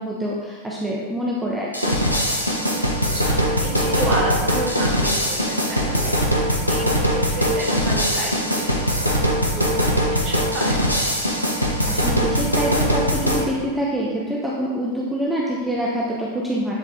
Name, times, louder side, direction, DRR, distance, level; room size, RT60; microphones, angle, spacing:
voice 1, 0.0-1.9 11.9-16.7, equal, 10° right, -4 dB, 1.1 m, -25 dB
sound 1, 1.7-13.4, equal, 90° left, 1.1 m, -21 dB
voice 2, 2.6-10.8, right 1 dB, 35° right, -3 dB, 2.3 m, -31 dB
10.5 x 5.2 x 3.9 m, 1.4 s
figure-of-eight pair, 90°, 0 cm